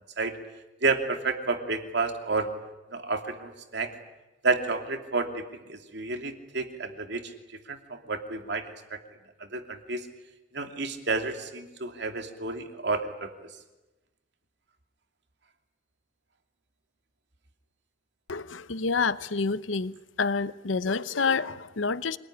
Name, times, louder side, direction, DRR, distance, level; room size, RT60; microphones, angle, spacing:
voice 1, 0.8-2.5 2.9-3.9 4.4-5.4 5.7-7.3 7.7-8.7 8.9-9.0 9.5-10.1 10.5-13.3, right 3 dB, 65° right, 2.8 m, -30 dB
voice 2, 18.3-19.9 20.2-22.2, left 4 dB, 85° left, 0.8 m, -28 dB
26.0 x 20.0 x 10.0 m
head